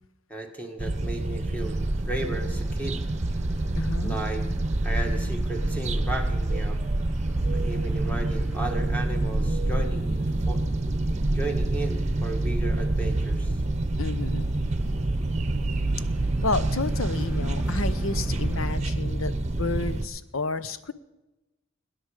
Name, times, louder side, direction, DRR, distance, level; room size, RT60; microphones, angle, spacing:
voice 1, 0.3-3.0 4.0-4.5 4.8-6.8 7.5-10.6 11.3-13.6, right 2 dB, 10° left, 3 dB, 1.7 m, -35 dB
sound 1, 0.8-20.1, right 2 dB, 35° right, 0.8 m, -27 dB
sound 2, 1.6-18.8, right 1 dB, 10° right, 2.1 m, -45 dB
voice 2, 3.7-4.2 14.0-14.7 16.4-19.3 19.6-20.9, left 3 dB, 90° left, 13 dB, 0.9 m, -31 dB
sound 3, 6.8-18.5, right 3 dB, 65° right, 0.7 m, -36 dB
19.5 x 10.5 x 5.0 m, 1.0 s
head